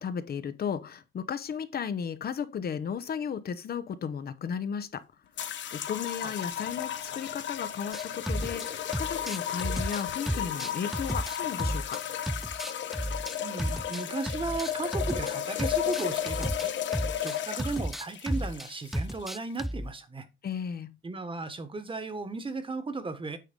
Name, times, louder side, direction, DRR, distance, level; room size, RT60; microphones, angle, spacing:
voice 1, 0.0-5.0 5.4-12.0 20.4-20.9, left 7 dB, 50° left, 0.9 m, -35 dB
sound 1, 5.4-19.6, left 10 dB, 65° left, 1.2 m, -34 dB
sound 2, 7.9-8.7 8.9-12.0 12.3-15.3 15.6-19.9, equal, ahead, 0.3 m, -33 dB
voice 2, 13.4-16.7 17.2-20.2 21.0-23.4, right 3 dB, 25° right, 1.5 m, -35 dB
9.2 x 3.8 x 5.3 m
cardioid pair, 90°, 20 cm